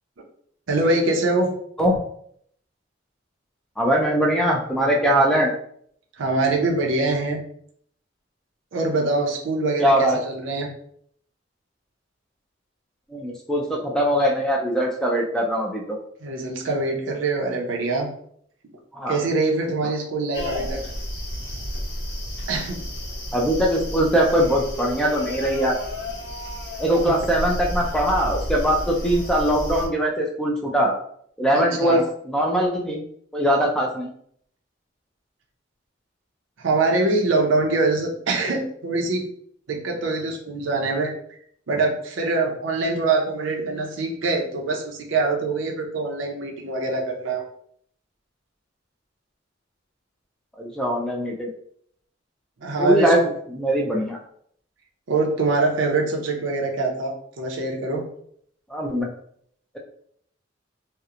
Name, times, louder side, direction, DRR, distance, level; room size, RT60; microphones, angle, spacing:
voice 1, 0.7-1.5 6.2-7.4 8.7-10.7 16.2-18.1 19.1-20.8 22.5-22.8 27.0-27.1 31.5-32.0 36.6-39.2 39.7-41.1 41.7-47.4 52.6-53.1 55.1-58.0, right 3 dB, 90° right, 0 dB, 0.6 m, -24 dB
voice 2, 3.8-5.5 9.8-10.2 13.1-16.0 18.9-19.2 23.3-25.8 26.8-30.9 31.4-33.0 33.3-34.1 50.6-51.5 52.8-53.2 53.5-54.2 58.7-59.1, equal, 5° left, -1 dB, 0.3 m, -21 dB
sound 1, 20.3-29.9, equal, 65° left, 0.9 m, -32 dB
2.8 x 2.0 x 2.4 m, 0.66 s
head